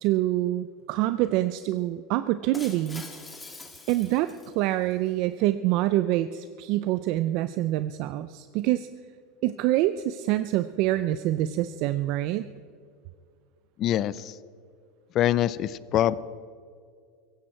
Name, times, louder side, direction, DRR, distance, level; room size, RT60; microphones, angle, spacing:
voice 1, 0.0-3.0 3.9-8.9 9.4-12.5, right 15 dB, 55° right, 12 dB, 0.5 m, -26 dB
Shatter, 2.5-4.9, left 3 dB, 10° left, 1.8 m, -44 dB
voice 2, 13.8-14.4 15.1-16.1, left 12 dB, 40° left, 18 dB, 0.5 m, -24 dB
17.5 x 15.5 x 4.5 m, 2.2 s
supercardioid pair, 135°, 0 cm